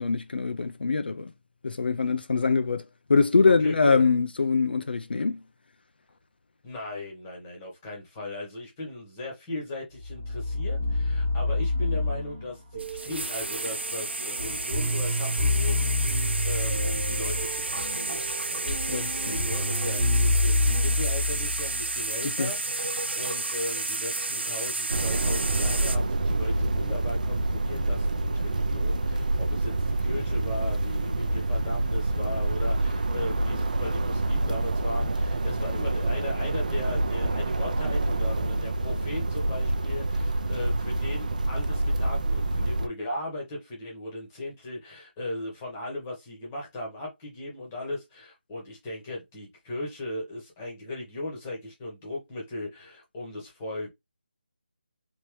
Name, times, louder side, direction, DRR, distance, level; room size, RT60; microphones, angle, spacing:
voice 1, 0.0-1.3 1.6-2.8 3.1-5.4 18.9-19.4 22.4-22.5, left 4 dB, 65° left, 0.4 m, -23 dB
voice 2, 3.4-4.0 6.6-53.9, left 1 dB, 10° left, 1.0 m, -37 dB
sound 1, 10.0-22.0, left 2 dB, 25° right, 1.3 m, -28 dB
sound 2, 12.8-26.0, right 3 dB, 90° right, 0.7 m, -31 dB
sound 3, 24.9-42.9, right 2 dB, 45° right, 0.5 m, -27 dB
3.5 x 2.8 x 3.0 m
figure-of-eight pair, 175°, 6 cm